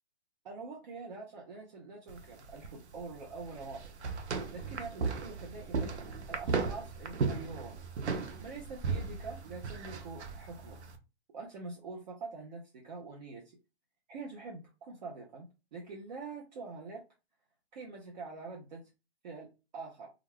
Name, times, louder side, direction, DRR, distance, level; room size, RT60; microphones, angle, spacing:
voice 1, 0.4-3.9 4.5-7.8 8.4-10.8 11.3-13.6 14.1-17.0 17.7-18.9 19.2-20.1, right 4 dB, 40° right, -1 dB, 0.6 m, -45 dB
sound 1, 2.1-11.0, right 4 dB, 90° right, 0.6 m, -36 dB
2.3 x 2.1 x 3.3 m, 0.28 s
hypercardioid pair, 145°, 33 cm